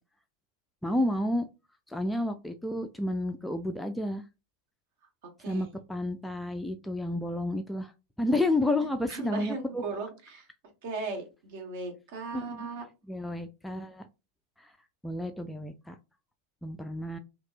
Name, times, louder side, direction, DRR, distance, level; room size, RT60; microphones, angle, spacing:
voice 1, 0.8-1.5 1.9-4.2 5.5-7.9 8.2-9.8 12.3-12.7 13.1-14.0 14.6-14.7 15.0-16.0 16.6-17.2, left 1 dB, 5° left, 6 dB, 0.3 m, -31 dB
voice 2, 8.8-10.5 10.8-12.8, right 3 dB, 50° right, 4 dB, 1.5 m, -37 dB
5.8 x 2.3 x 2.6 m, 0.28 s
figure-of-eight pair, 90°, 0 cm